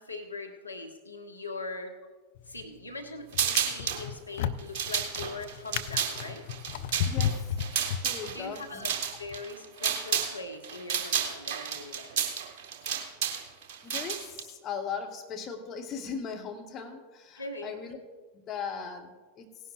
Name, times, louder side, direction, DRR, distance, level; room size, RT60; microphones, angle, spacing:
voice 1, 0.0-1.9 2.5-6.5 8.1-8.9 9.2-12.2 17.3-17.8, left 2 dB, 80° left, 3 dB, 1.0 m, -41 dB
Drawer open or close, 2.4-2.8 3.3-8.5 9.2-9.4, left 9 dB, 55° left, 0.4 m, -34 dB
sound 1, 3.3-4.0 4.6-10.4 10.6-14.4, right 7 dB, 45° right, 1.6 m, -31 dB
voice 2, 7.0-7.4 7.9-8.8 9.8-10.0 13.8-18.0 18.3-19.4, left 6 dB, 30° left, 3 dB, 1.2 m, -38 dB
18.0 x 11.0 x 2.5 m, 1.4 s
figure-of-eight pair, 90°, 0 cm